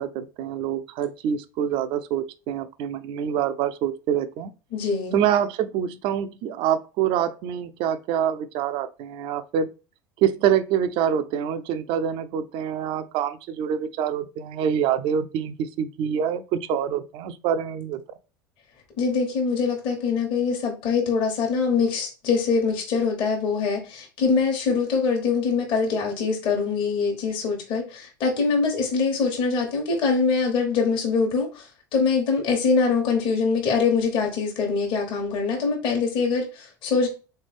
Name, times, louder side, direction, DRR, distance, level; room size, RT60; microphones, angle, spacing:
voice 1, 0.0-4.5 5.1-9.7 10.2-18.0, right 9 dB, 50° right, 0.5 m, -26 dB
voice 2, 4.7-5.2 19.0-37.1, left 5 dB, 50° left, 1.2 m, -23 dB
3.7 x 3.3 x 3.3 m
hypercardioid pair, 75°, 11 cm